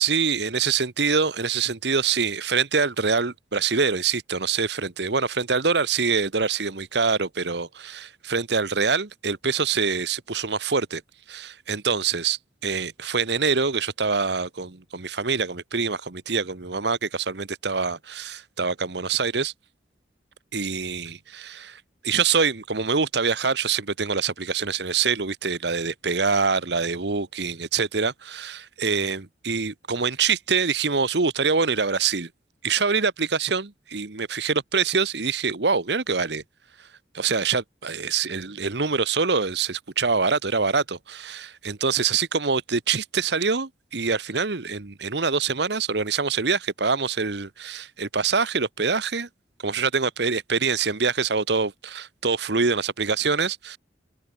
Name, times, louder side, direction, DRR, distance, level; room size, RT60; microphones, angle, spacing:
voice 1, 0.0-11.0 11.3-19.5 20.5-32.3 32.6-36.4 37.1-49.3 49.6-53.8, right 5 dB, 65° right, 1.2 m, -25 dB
open air
head